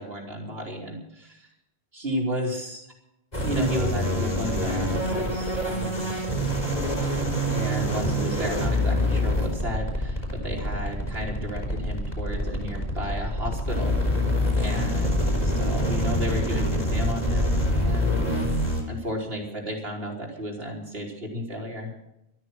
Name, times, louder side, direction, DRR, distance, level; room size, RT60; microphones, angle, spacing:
voice 1, 0.0-1.5 1.9-2.9 3.4-6.1 7.5-14.0 14.6-18.2 18.9-21.9, equal, 65° right, 0 dB, 4.1 m, -33 dB
sound 1, 3.3-18.8, equal, 40° left, 4.7 m, -26 dB
14.5 x 13.0 x 6.4 m, 0.86 s
omnidirectional pair, 1.1 m